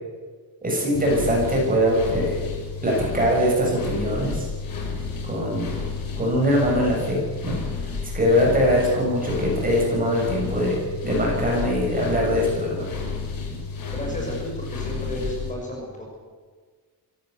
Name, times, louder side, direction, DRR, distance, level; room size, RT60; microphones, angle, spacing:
voice 1, 0.6-2.4 2.8-4.5 5.2-5.7 6.2-7.6 8.0-12.9, equal, 20° right, -2 dB, 7.5 m, -22 dB
sound 1, 0.9-15.5, left 4 dB, 60° left, 5.4 m, -31 dB
voice 2, 13.9-16.0, equal, 20° left, -1 dB, 6.2 m, -32 dB
25.5 x 16.5 x 8.1 m, 1.5 s
wide cardioid pair, 180°, 38 cm